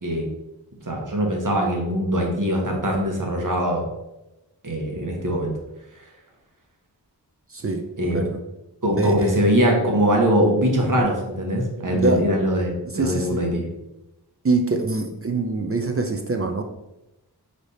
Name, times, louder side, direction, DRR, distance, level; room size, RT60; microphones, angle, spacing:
voice 1, 0.8-3.8 4.6-5.5 8.0-8.2 8.8-13.7, equal, 50° right, 0 dB, 1.0 m, -22 dB
voice 2, 7.5-7.8 8.1-8.4 8.9-9.5 11.9-12.3 12.8-13.4 14.4-16.6, right 3 dB, 35° right, 5 dB, 0.4 m, -24 dB
5.1 x 3.2 x 2.7 m, 0.94 s
wide cardioid pair, 65°, 39 cm